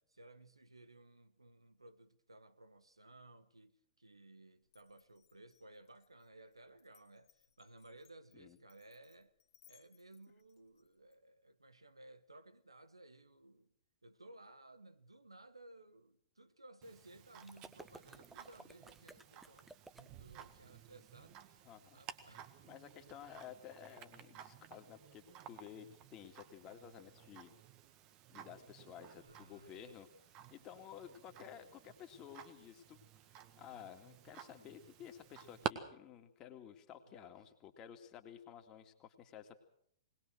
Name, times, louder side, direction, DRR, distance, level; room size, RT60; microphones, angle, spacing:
voice 1, 0.0-9.3 9.6-13.7 14.0-21.6 21.9-22.8 29.1-30.0 31.4-31.7 37.0-37.3, right 2 dB, 80° right, 1.4 m, -59 dB
Glass, 4.7-11.2, left 12 dB, 45° left, 2.3 m, -70 dB
Tick-tock, 16.8-35.7, right 10 dB, 30° right, 1.7 m, -52 dB
sound 1, 17.4-20.5, right 2 dB, 5° right, 0.9 m, -57 dB
voice 2, 21.6-22.0 22.7-27.5 28.3-30.1 30.5-33.0 33.6-39.6, left 9 dB, 25° left, 2.4 m, -53 dB
21.0 x 20.5 x 6.4 m
figure-of-eight pair, 110°, 3 cm